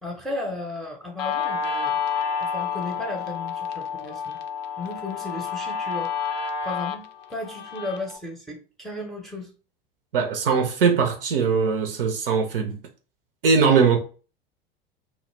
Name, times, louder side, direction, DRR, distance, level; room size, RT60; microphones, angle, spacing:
voice 1, 0.0-2.0 2.4-4.4 4.8-6.1 6.4-7.0 7.3-9.5, left 2 dB, ahead, 0.7 m, -34 dB
Guitar, 1.2-8.2, left 6 dB, 50° left, 0.5 m, -29 dB
voice 2, 10.1-12.8 13.4-14.0, right 5 dB, 70° right, 0.5 m, -20 dB
2.2 x 2.1 x 3.1 m
figure-of-eight pair, 80°, 29 cm